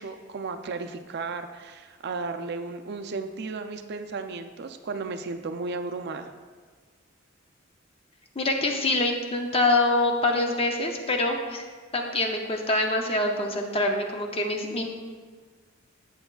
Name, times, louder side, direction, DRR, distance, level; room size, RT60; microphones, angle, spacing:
voice 1, 0.0-6.3, right 4 dB, 55° right, 7 dB, 0.4 m, -34 dB
voice 2, 8.4-11.6 11.9-14.9, left 2 dB, 30° left, 2 dB, 0.6 m, -25 dB
7.9 x 7.8 x 2.3 m, 1.5 s
head